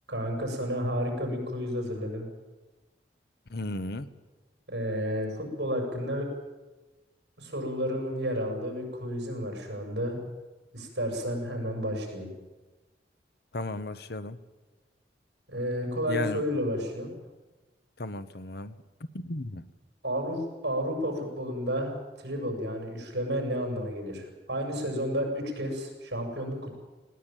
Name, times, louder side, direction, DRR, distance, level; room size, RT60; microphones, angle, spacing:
voice 1, 0.1-2.3 4.7-6.2 7.4-10.2 10.7-12.3 15.5-17.1 20.0-26.8, equal, 70° right, 3 dB, 6.8 m, -31 dB
voice 2, 3.5-4.1 13.5-14.4 16.1-16.4 18.0-18.8 19.2-19.6, left 2 dB, 65° left, 13 dB, 1.0 m, -34 dB
20.0 x 18.0 x 9.1 m, 1.2 s
head